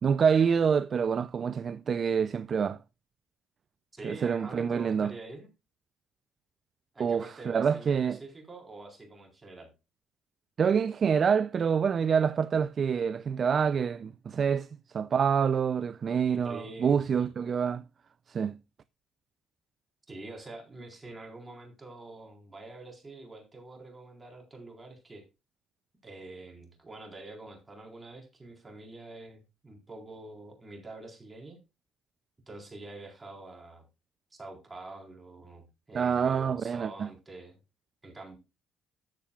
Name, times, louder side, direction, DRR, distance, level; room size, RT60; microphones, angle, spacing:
voice 1, 0.0-2.8 4.0-5.1 7.0-8.2 10.6-17.8 18.3-18.6 35.9-37.1, right 6 dB, 45° right, 0.4 m, -27 dB
voice 2, 3.9-5.5 6.9-9.7 16.3-17.3 20.1-25.3 26.0-31.6 32.5-33.9 34.4-37.6 38.0-38.4, right 2 dB, 20° right, 4.1 m, -46 dB
14.0 x 7.1 x 2.3 m
cardioid pair, 95°, 0 cm